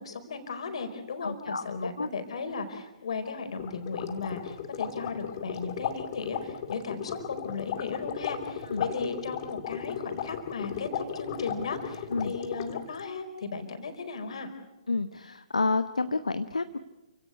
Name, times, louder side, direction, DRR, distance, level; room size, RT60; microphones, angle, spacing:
voice 1, 0.0-14.5, left 4 dB, 55° left, 7 dB, 4.6 m, -36 dB
voice 2, 1.2-2.1 8.7-8.9 12.1-12.3 14.9-16.8, left 3 dB, 75° left, 10 dB, 1.1 m, -30 dB
sound 1, 3.6-13.0, left 8 dB, 40° left, 2.4 m, -36 dB
29.0 x 17.0 x 8.5 m, 1.0 s
figure-of-eight pair, 125°, 4 cm